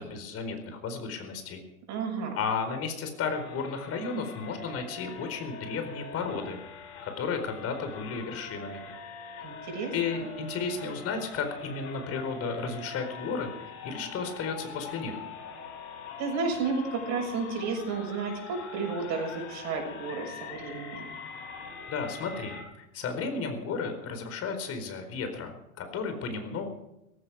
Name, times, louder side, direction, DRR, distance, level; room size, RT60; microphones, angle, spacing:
voice 1, 0.0-1.6 2.4-6.6 7.0-8.8 9.9-15.2 21.9-26.7, left 5 dB, 35° left, 7 dB, 4.6 m, -33 dB
voice 2, 1.9-2.4 9.4-10.3 16.2-21.2, right 4 dB, 40° right, 3 dB, 7.0 m, -32 dB
sound 1, 3.3-22.6, left 4 dB, 55° left, 5.7 m, -43 dB
17.5 x 16.0 x 5.0 m, 0.86 s
hypercardioid pair, 95°, 41 cm